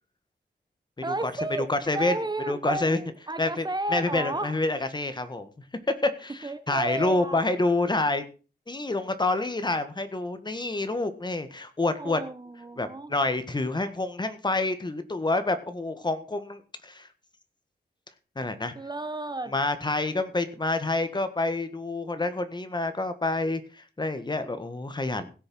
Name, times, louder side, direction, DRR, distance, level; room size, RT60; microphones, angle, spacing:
voice 1, 1.0-4.6 6.4-7.5 12.0-13.1 18.7-19.5, right 2 dB, 25° right, 0.9 m, -33 dB
voice 2, 1.7-2.2 2.5-3.0 3.4-3.7 3.9-5.5 6.0-8.2 8.7-12.2 12.8-17.1 18.3-18.7 19.5-25.3, left 2 dB, 25° left, 1.6 m, -28 dB
16.5 x 6.5 x 6.2 m
wide cardioid pair, 130°, 18 cm